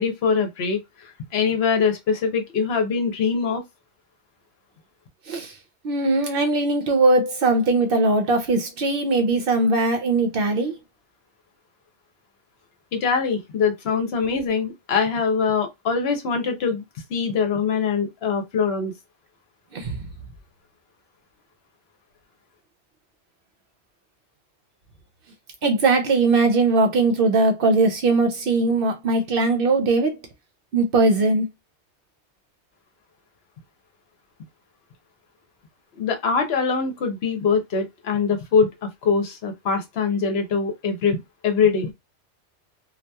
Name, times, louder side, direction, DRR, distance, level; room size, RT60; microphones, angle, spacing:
voice 1, 0.0-3.6 12.9-16.8 17.1-18.9 36.0-41.9, left 5 dB, 65° left, 0.9 m, -23 dB
voice 2, 5.8-10.7 19.7-20.0 25.6-30.2 30.7-31.5, right 3 dB, 60° right, 0.7 m, -20 dB
2.8 x 2.2 x 2.2 m
omnidirectional pair, 1.2 m